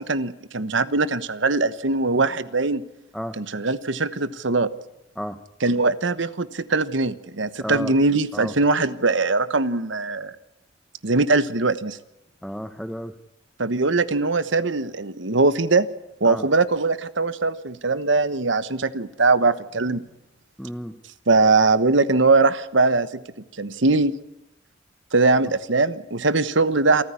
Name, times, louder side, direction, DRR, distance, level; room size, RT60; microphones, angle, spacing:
voice 1, 0.0-2.8 3.4-4.7 5.6-10.3 11.0-12.0 13.6-15.9 16.2-20.0 21.3-23.1 23.6-24.2 25.1-27.0, right 3 dB, 75° right, 14 dB, 1.2 m, -21 dB
voice 2, 7.6-8.0 8.3-8.6 12.4-13.2 16.2-16.6 20.6-21.0 25.4-25.5, equal, ahead, 8 dB, 0.9 m, -33 dB
27.5 x 14.5 x 9.8 m, 0.89 s
head